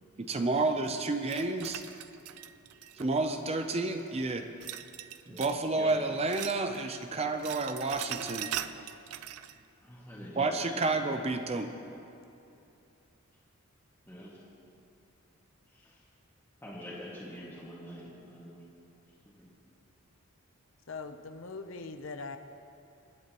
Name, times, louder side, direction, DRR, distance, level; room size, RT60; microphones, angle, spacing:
voice 1, 0.2-1.8 3.0-4.5 5.3-8.5 10.4-11.7, right 3 dB, 30° right, 6 dB, 0.5 m, -30 dB
sound 1, 1.3-3.4 4.6-5.6 5.9-7.0 7.3-9.6, right 11 dB, 90° right, 0.5 m, -41 dB
voice 2, 5.3-5.9 9.8-11.5 14.1-14.4 15.7-16.0 16.6-18.6 19.3-19.5, equal, 10° left, -8 dB, 2.0 m, -45 dB
voice 3, 20.9-22.4, left 4 dB, 60° left, 7 dB, 0.7 m, -41 dB
27.5 x 10.5 x 3.0 m, 2.7 s
head